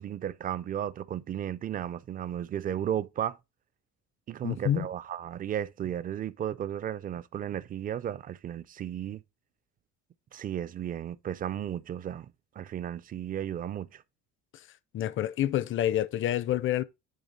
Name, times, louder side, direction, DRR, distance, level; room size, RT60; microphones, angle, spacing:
voice 1, 0.0-3.4 4.3-9.2 10.3-14.0, right 10 dB, 30° right, 0.4 m, -34 dB
voice 2, 4.4-4.9 14.9-16.8, left 12 dB, 45° left, 0.5 m, -28 dB
10.5 x 3.5 x 4.0 m
cardioid pair, 160°, 29 cm